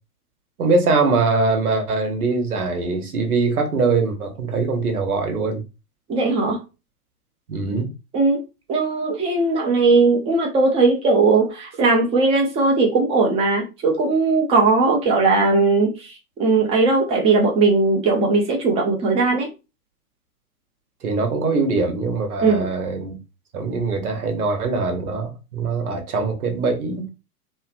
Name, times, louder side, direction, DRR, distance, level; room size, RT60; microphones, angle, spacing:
voice 1, 0.6-5.6 7.5-7.9 21.0-23.2 23.5-27.1, right 3 dB, 70° right, 1.0 m, -22 dB
voice 2, 6.1-6.6 8.1-8.4 8.7-16.1 16.4-19.5 22.4-22.7, right 3 dB, 15° right, 0.5 m, -18 dB
2.7 x 2.3 x 2.5 m
figure-of-eight pair, 110°, 46 cm